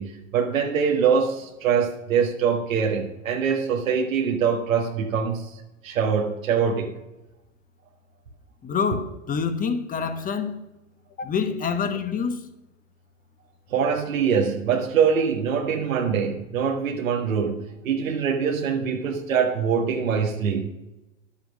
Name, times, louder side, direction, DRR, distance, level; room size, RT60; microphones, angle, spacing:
voice 1, 0.0-5.6 5.8-6.9 13.7-20.6, right 6 dB, 80° right, 1.5 m, -23 dB
voice 2, 8.6-10.6 11.2-12.4, left 6 dB, 20° left, 1.2 m, -26 dB
10.5 x 7.9 x 6.3 m
hypercardioid pair, 110°, 40 cm